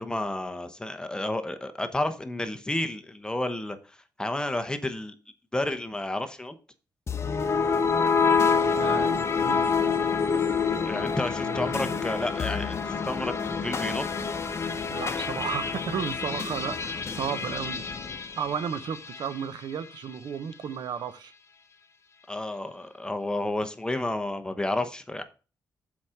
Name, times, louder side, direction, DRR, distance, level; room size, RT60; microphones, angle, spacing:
voice 1, 0.0-5.1 5.5-6.6 10.8-14.0 22.3-25.2, left 1 dB, 10° left, 1.0 m, -31 dB
sound 1, 7.1-19.4, left 5 dB, 40° left, 0.9 m, -27 dB
voice 2, 8.6-9.7 11.4-12.0 14.9-17.8 18.4-21.3, right 8 dB, 80° right, 0.8 m, -34 dB
7.2 x 5.0 x 5.7 m
cardioid pair, 110°, 7 cm